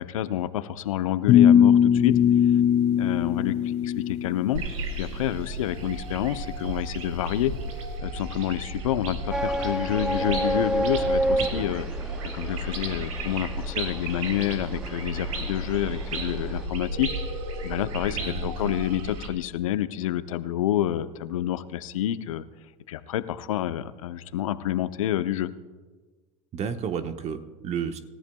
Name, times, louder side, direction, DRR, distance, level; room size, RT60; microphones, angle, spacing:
voice 1, 0.0-2.2 2.9-4.7 5.0-7.5 8.0-11.8 12.3-17.1 17.6-22.4 22.9-25.5, left 12 dB, 75° left, 13 dB, 0.7 m, -28 dB
sound 1, 1.3-4.4, left 9 dB, 40° left, 0.8 m, -19 dB
sound 2, 4.5-19.3, right 2 dB, 80° right, 2.6 m, -33 dB
sound 3, 9.3-16.6, right 1 dB, 5° right, 0.6 m, -30 dB
voice 2, 11.4-11.7 18.1-18.5 26.5-28.0, right 7 dB, 40° right, 8 dB, 1.2 m, -32 dB
27.0 x 14.0 x 2.3 m, 1.4 s
hypercardioid pair, 85°, 17 cm